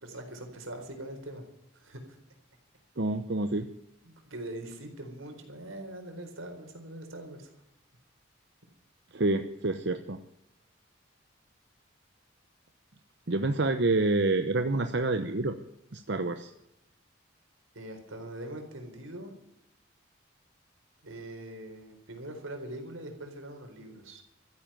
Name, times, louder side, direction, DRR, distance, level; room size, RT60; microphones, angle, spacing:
voice 1, 0.0-1.4 1.7-2.2 4.0-7.5 17.7-19.3 21.0-24.2, right 1 dB, 85° right, 4 dB, 4.3 m, -42 dB
voice 2, 3.0-3.7 9.1-10.2 13.3-15.6 15.9-16.5, right 2 dB, 55° right, 8 dB, 0.9 m, -27 dB
14.0 x 9.9 x 9.0 m, 0.83 s
head